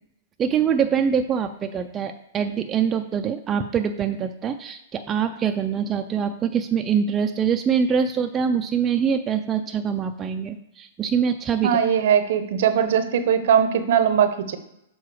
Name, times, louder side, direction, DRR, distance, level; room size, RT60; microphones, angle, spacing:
voice 1, 0.4-11.8, right 7 dB, 25° right, 6 dB, 0.4 m, -24 dB
voice 2, 11.6-14.6, right 8 dB, 65° right, 10 dB, 0.7 m, -20 dB
6.8 x 3.9 x 4.8 m, 0.82 s
hypercardioid pair, 125°, 0 cm